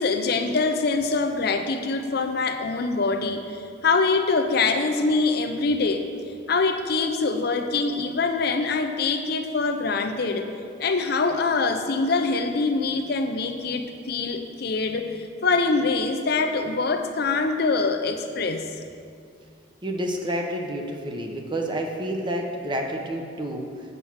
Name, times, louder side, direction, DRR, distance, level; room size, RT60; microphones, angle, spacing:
voice 1, 0.0-6.1 6.5-10.4 10.8-18.7, left 3 dB, 55° left, 6 dB, 0.6 m, -24 dB
voice 2, 19.8-23.6, right 1 dB, 25° right, 2 dB, 0.8 m, -29 dB
8.0 x 6.1 x 7.1 m, 2.3 s
head